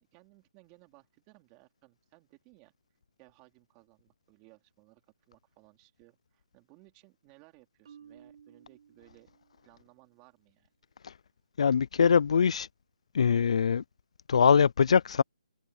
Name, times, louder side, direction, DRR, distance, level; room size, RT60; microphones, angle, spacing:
voice 1, 0.0-2.7 3.2-9.3 9.6-10.7, right 25 dB, 20° right, 3.5 m, -60 dB
Marimba xylophone, 7.8-9.9, right 8 dB, 50° right, 5.0 m, -56 dB
voice 2, 11.6-12.7 13.1-13.8 14.3-15.2, left 6 dB, 60° left, 0.4 m, -23 dB
hypercardioid pair, 165°, 4 cm